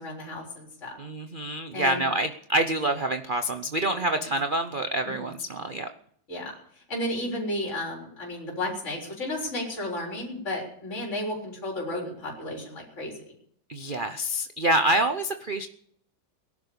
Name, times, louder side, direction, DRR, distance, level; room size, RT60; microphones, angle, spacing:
voice 1, 0.0-1.0 1.7-2.0 3.9-4.3 5.1-5.3 6.3-13.1, left 1 dB, 35° left, -2 dB, 4.3 m, -33 dB
voice 2, 1.0-5.9 13.7-15.7, right 1 dB, 60° right, 7 dB, 0.5 m, -27 dB
18.0 x 11.5 x 6.9 m, 0.65 s
omnidirectional pair, 2.1 m